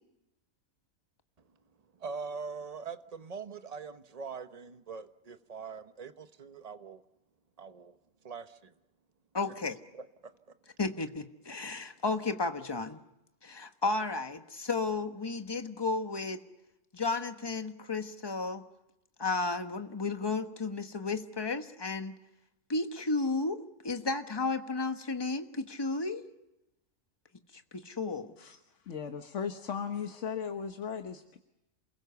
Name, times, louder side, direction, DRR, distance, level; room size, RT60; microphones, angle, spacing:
voice 1, 2.0-7.0 7.6-8.0 8.2-8.7 9.9-10.3, right 5 dB, 30° right, 9 dB, 1.0 m, -42 dB
voice 2, 9.3-9.8 10.8-13.0 13.4-16.4 16.9-18.6 19.2-22.2 22.7-26.2 27.7-28.3, left 3 dB, 20° left, 7 dB, 1.2 m, -33 dB
voice 3, 28.8-31.4, left 7 dB, 55° left, 7 dB, 1.5 m, -37 dB
28.5 x 21.5 x 7.0 m, 0.91 s
omnidirectional pair, 1.5 m